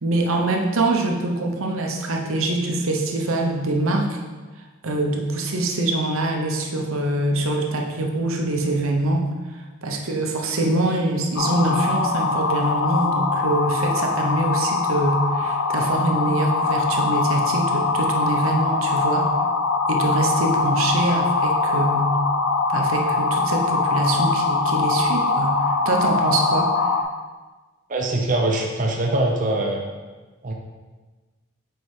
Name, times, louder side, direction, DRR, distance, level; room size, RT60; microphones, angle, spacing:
voice 1, 0.0-4.2 4.8-9.3 9.8-19.3 19.9-22.2 22.7-26.9, right 2 dB, 85° right, 2 dB, 0.8 m, -24 dB
sound 1, 11.4-27.0, left 4 dB, 80° left, 0.5 m, -22 dB
voice 2, 27.9-29.8 30.4-30.5, right 2 dB, 40° right, 1 dB, 0.5 m, -22 dB
4.5 x 4.4 x 4.7 m, 1.3 s
head